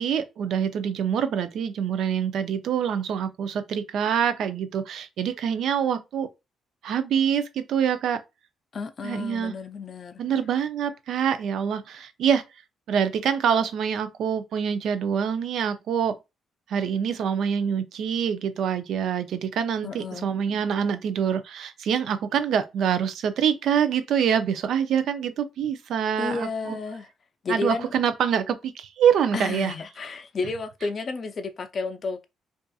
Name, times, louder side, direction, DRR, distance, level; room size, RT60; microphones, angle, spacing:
voice 1, 0.0-6.3 6.8-8.2 9.0-9.5 10.2-12.4 12.9-16.2 16.7-26.8 27.5-29.7, right 8 dB, 70° right, 0.4 m, -25 dB
voice 2, 8.7-10.2 19.8-20.3 26.2-27.1 27.4-27.9 29.3-32.2, left 4 dB, 45° left, 0.4 m, -32 dB
2.6 x 2.4 x 2.3 m
cardioid pair, 90°, 0 cm